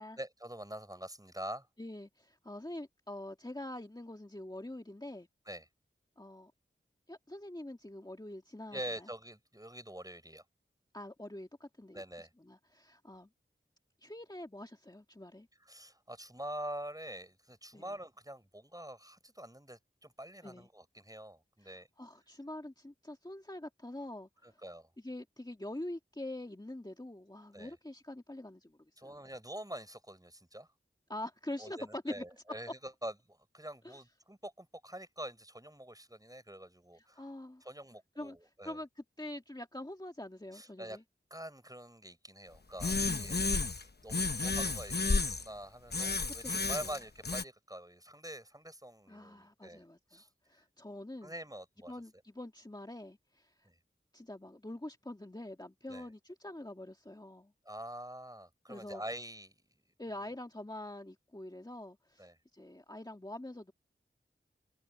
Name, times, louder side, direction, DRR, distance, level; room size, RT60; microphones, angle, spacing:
voice 1, 0.2-1.7 5.5-5.7 8.7-10.4 11.9-12.3 15.6-21.9 24.4-24.9 27.5-27.7 29.0-30.7 31.6-37.3 37.6-38.8 40.5-41.0 41.3-43.4 43.7-49.8 50.1-50.3 51.2-51.9 53.6-53.7 55.9-56.1 57.7-59.6 60.2-60.3 62.2-62.4, right 1 dB, 15° right, 5.8 m, -45 dB
voice 2, 1.8-5.3 6.2-6.5 7.1-9.1 10.9-13.3 14.0-15.5 17.7-18.0 20.4-20.7 21.6-24.6 25.0-29.2 31.1-32.2 33.8-34.0 37.0-37.7 38.2-41.0 43.1-43.5 46.4-46.9 49.1-51.3 51.9-53.5 54.1-57.5 58.7-59.0 60.0-63.7, left 1 dB, 20° left, 1.9 m, -45 dB
sound 1, 42.8-43.8 44.1-45.5 45.9-47.4, left 3 dB, 50° left, 0.9 m, -32 dB
wide cardioid pair, 50°, 21 cm